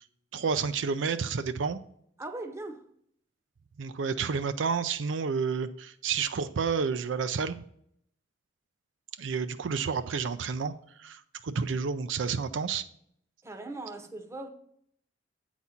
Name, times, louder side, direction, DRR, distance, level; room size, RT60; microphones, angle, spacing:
voice 1, 0.3-1.8 3.8-7.6 9.2-12.9, right 5 dB, 90° right, 0.5 m, -30 dB
voice 2, 2.2-2.8 13.4-14.5, right 2 dB, 15° right, 0.8 m, -39 dB
8.3 x 4.1 x 5.8 m
head